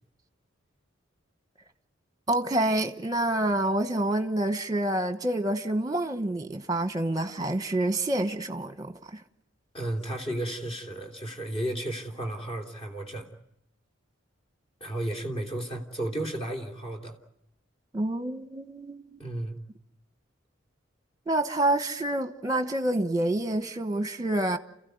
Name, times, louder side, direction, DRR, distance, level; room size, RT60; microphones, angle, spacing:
voice 1, 2.3-9.2 17.9-19.2 21.3-24.6, right 1 dB, 20° right, 1.2 m, -27 dB
voice 2, 9.7-13.3 14.8-17.2 19.2-19.5, right 1 dB, 30° left, 3.2 m, -33 dB
29.0 x 15.5 x 9.5 m
head